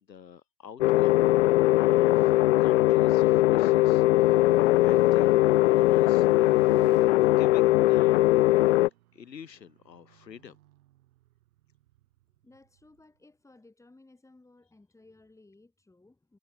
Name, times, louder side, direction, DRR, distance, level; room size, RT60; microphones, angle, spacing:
voice 1, 0.1-1.2 1.4-6.5 7.2-8.3 9.1-10.6, left 7 dB, 85° left, 1.6 m, -48 dB
sound 1, 0.8-8.9, left 17 dB, 50° left, 0.5 m, -20 dB
sound 2, 2.9-13.0, right 16 dB, 60° right, 6.6 m, -52 dB
voice 2, 12.4-16.4, left 2 dB, 5° left, 6.3 m, -58 dB
hypercardioid pair, 110°, 49 cm